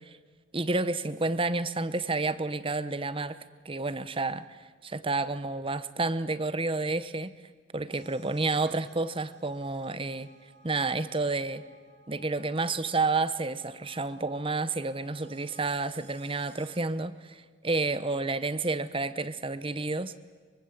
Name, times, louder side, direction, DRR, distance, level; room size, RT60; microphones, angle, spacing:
voice 1, 0.5-3.4 3.6-4.4 4.8-7.3 7.7-10.3 10.6-11.6 12.1-20.1, right 3 dB, 30° right, 15 dB, 0.9 m, -30 dB
sound 1, 7.9-16.8, right 3 dB, 60° right, 1.9 m, -57 dB
24.0 x 23.5 x 8.4 m, 1.5 s
head